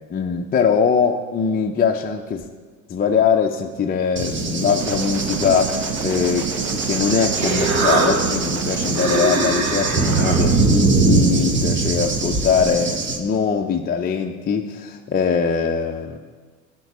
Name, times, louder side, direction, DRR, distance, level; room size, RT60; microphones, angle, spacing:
voice 1, 0.1-2.4 2.9-16.2, left 6 dB, 20° left, 2 dB, 0.6 m, -22 dB
Cricket / Thunder, 4.2-13.2, right 3 dB, 25° right, 1.3 m, -22 dB
sound 1, 4.8-9.2, right 8 dB, 55° right, 1.2 m, -29 dB
Human voice, 6.9-12.1, right 3 dB, 80° right, 1.8 m, -26 dB
12.5 x 4.6 x 8.2 m, 1.4 s
hypercardioid pair, 90°, 42 cm